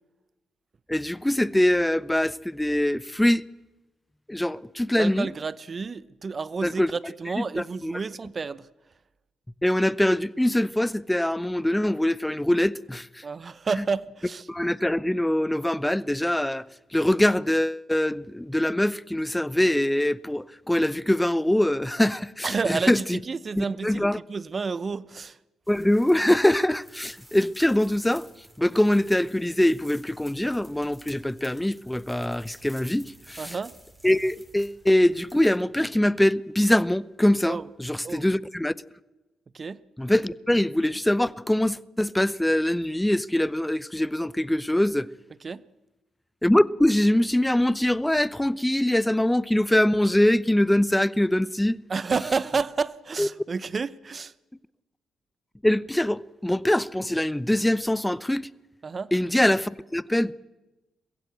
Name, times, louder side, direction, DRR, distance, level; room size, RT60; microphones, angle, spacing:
voice 1, 0.9-3.5 4.3-5.3 6.6-6.9 7.4-7.9 9.6-13.2 13.8-13.9 14.5-16.6 16.9-23.2 23.6-24.2 25.7-28.3 28.6-33.6 34.0-38.7 40.0-45.1 46.4-51.8 53.2-53.3 55.6-58.5 59.1-60.3, left 1 dB, 10° left, 0.7 m, -23 dB
voice 2, 4.9-8.7 13.2-14.5 22.4-25.4 33.4-33.7 37.5-37.6 38.0-38.2 39.5-39.8 45.4-45.6 51.9-54.3 58.8-59.1, right 4 dB, 45° right, 0.8 m, -30 dB
sound 1, 25.6-35.6, right 1 dB, 10° right, 3.6 m, -52 dB
22.5 x 15.5 x 8.0 m
hypercardioid pair, 45°, 0 cm